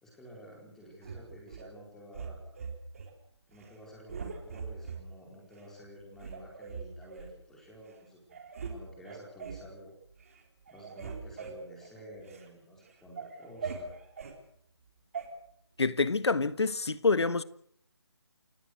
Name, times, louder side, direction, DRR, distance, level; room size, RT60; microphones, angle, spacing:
voice 1, 0.0-2.5 3.5-8.4 8.7-9.9 10.7-13.9, equal, 5° left, 4.5 m, -51 dB
sound 1, 1.0-1.7 2.1-3.1 3.5-3.8 4.1-5.0 5.6-5.7 6.2-7.3 7.9-8.0 8.3-8.8 9.0-9.7 10.1-10.4 10.7-12.5 12.9-14.4 15.1-15.3, right 5 dB, 30° right, 4.1 m, -41 dB
voice 2, 15.8-17.4, left 4 dB, 75° left, 1.5 m, -27 dB
28.5 x 18.0 x 6.5 m
figure-of-eight pair, 170°, 14 cm